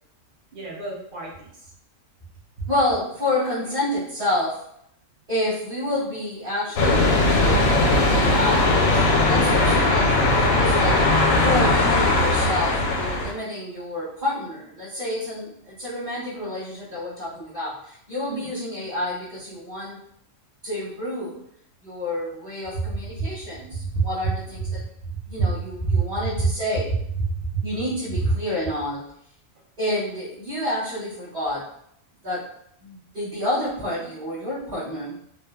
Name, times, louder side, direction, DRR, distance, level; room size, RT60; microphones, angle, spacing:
voice 1, 0.5-1.7 2.6-2.7 18.3-18.5 22.9-23.3 23.7-24.4 24.6-25.6 25.8-26.0 26.3-26.5 27.3-27.6 28.2-28.3, right 4 dB, 45° right, -3 dB, 0.8 m, -27 dB
voice 2, 2.7-4.6 5.3-20.0 20.6-21.4 21.8-24.8 25.3-27.0 27.6-29.0 29.8-31.6 32.2-32.5 32.8-35.1, left 1 dB, 30° right, -13 dB, 1.3 m, -29 dB
sound 1, 6.8-13.3, left 2 dB, 90° left, 1.0 m, -19 dB
3.1 x 2.1 x 2.3 m, 0.70 s
omnidirectional pair, 1.4 m